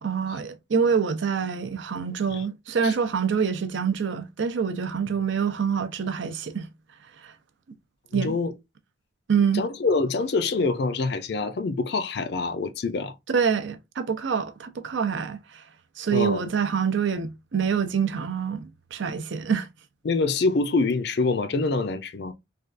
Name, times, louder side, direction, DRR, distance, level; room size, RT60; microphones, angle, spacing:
voice 1, 0.0-6.7 7.2-7.3 8.1-8.3 9.3-9.6 13.3-15.6 16.0-19.7, right 6 dB, 70° right, 0.5 m, -26 dB
voice 2, 8.1-8.5 9.5-13.2 16.1-16.5 20.0-22.3, left 3 dB, 55° left, 0.4 m, -25 dB
3.3 x 2.3 x 2.4 m
head